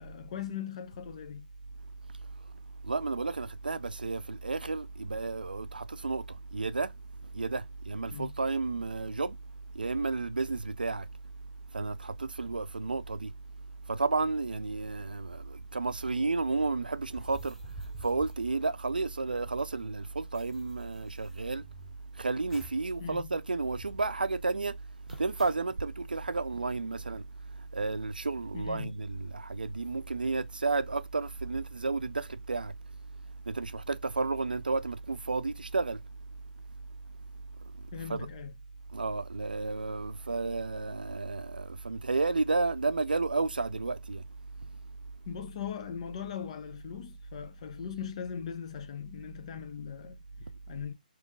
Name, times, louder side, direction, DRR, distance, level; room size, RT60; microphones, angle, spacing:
voice 1, 0.0-1.5 8.1-8.3 23.0-23.4 28.5-29.0 37.9-38.5 45.3-50.9, left 8 dB, 45° left, 0.7 m, -40 dB
voice 2, 2.8-6.9 7.2-9.4 9.7-11.1 11.7-13.3 13.9-21.7 22.1-24.8 25.1-32.7 33.5-36.0 37.6-38.3 38.9-44.2, right 3 dB, 90° right, 0.4 m, -32 dB
sound 1, 17.1-19.3 19.6-19.7 19.9-22.0 22.5-22.9 23.2-23.3 23.7-24.2 25.1-25.8, equal, ahead, 0.7 m, -51 dB
3.6 x 3.0 x 3.7 m
figure-of-eight pair, 145°, 5 cm